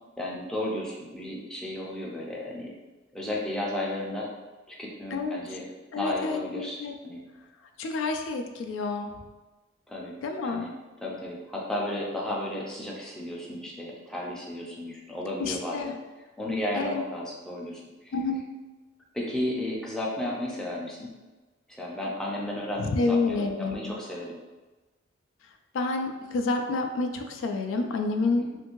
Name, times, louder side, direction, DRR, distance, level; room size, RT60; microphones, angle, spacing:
voice 1, 0.2-2.7 3.1-4.3 4.7-5.6 5.9-7.2 9.9-10.1 10.4-10.7 11.0-15.9 16.4-18.1 19.1-21.1 21.7-24.4 28.4-28.6, left 1 dB, 5° left, -4 dB, 0.4 m, -33 dB
voice 2, 5.1-5.6 5.9-7.0 7.8-9.1 10.2-10.7 15.4-15.9 16.7-17.0 18.1-18.4 22.8-23.9 25.7-28.5, left 3 dB, 75° left, 4 dB, 0.3 m, -29 dB
2.6 x 2.5 x 2.9 m, 1.2 s
head